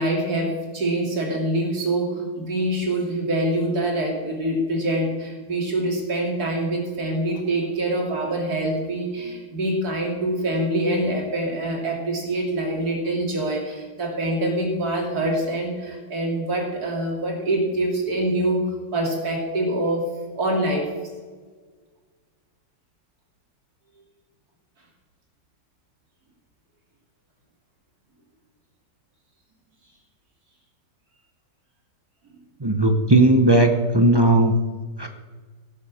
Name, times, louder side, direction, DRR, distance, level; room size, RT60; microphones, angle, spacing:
voice 1, 0.0-20.1 20.3-20.9, right 1 dB, 55° right, -1 dB, 3.3 m, -25 dB
voice 2, 32.6-34.5 35.0-35.1, right 1 dB, 25° right, 4 dB, 0.5 m, -17 dB
17.5 x 7.4 x 6.3 m, 1.5 s
omnidirectional pair, 1.9 m